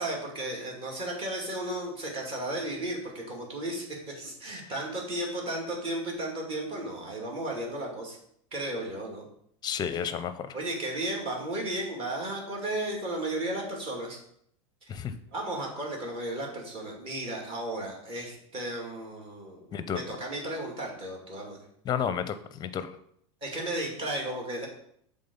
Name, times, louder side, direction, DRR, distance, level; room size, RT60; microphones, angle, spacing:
voice 1, 0.0-3.8 4.2-8.2 8.5-9.3 10.5-14.2 14.9-15.0 15.3-21.6 23.4-24.7, right 1 dB, 35° right, -1 dB, 2.5 m, -34 dB
voice 2, 9.6-10.6 14.9-15.1 19.7-20.0 21.8-23.0, left 8 dB, 25° left, 12 dB, 0.6 m, -32 dB
7.1 x 3.7 x 5.4 m, 0.68 s
supercardioid pair, 125°, 16 cm